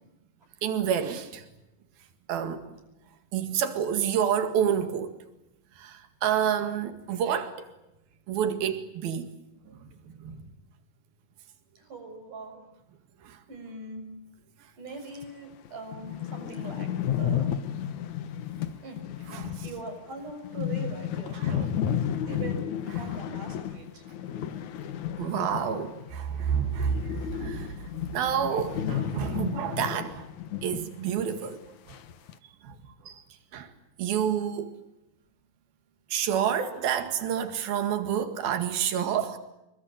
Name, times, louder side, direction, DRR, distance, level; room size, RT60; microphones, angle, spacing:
voice 1, 0.6-1.4 2.3-2.6 3.3-5.1 5.8-7.6 8.3-9.3 9.7-9.9 10.2-10.5 13.2-13.4 19.3-19.7 21.4-21.7 25.2-27.7 28.1-30.3 30.6-31.6 32.6-32.8 33.0-33.2 33.5-33.7 34.0-34.8 36.1-39.4, right 8 dB, 85° right, 3.9 m, -29 dB
voice 2, 11.8-12.7 13.5-14.1 14.8-16.9 17.2-17.5 18.8-19.0 19.6-21.8 22.3-22.7 23.0-24.0, right 3 dB, 60° right, 8.0 m, -41 dB
sound 1, 15.2-15.3 15.7-15.8 15.9-26.2 26.4-30.9 31.2-31.3 31.9-32.3, left 9 dB, 60° left, 2.5 m, -32 dB
29.5 x 22.5 x 9.0 m
omnidirectional pair, 4.1 m